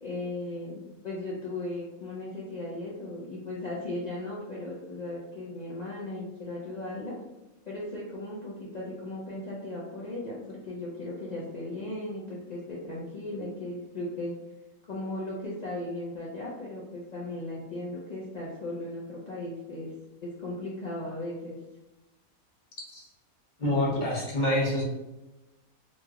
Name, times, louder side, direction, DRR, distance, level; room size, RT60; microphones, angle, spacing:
voice 1, 0.0-7.1 7.7-14.3 14.9-19.9 20.2-21.6, left 2 dB, 90° left, -6 dB, 0.3 m, -37 dB
voice 2, 23.6-24.8, left 1 dB, 40° left, -3 dB, 0.7 m, -26 dB
3.0 x 3.0 x 2.3 m, 0.99 s
omnidirectional pair, 1.5 m